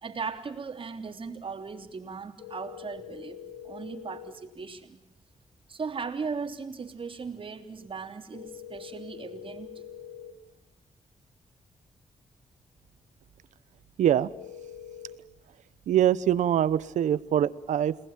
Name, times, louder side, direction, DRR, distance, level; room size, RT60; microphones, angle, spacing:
voice 1, 0.0-3.4 3.6-5.0 5.7-9.8, right 5 dB, 45° right, 6 dB, 3.3 m, -37 dB
sound 1, 2.4-4.3 8.3-10.3 14.3-15.2, left 10 dB, 85° left, 6.2 m, -44 dB
voice 2, 14.0-14.3 15.9-18.0, right 10 dB, 90° right, 18 dB, 0.9 m, -23 dB
30.0 x 19.5 x 7.5 m, 0.86 s
cardioid pair, 85°, 12 cm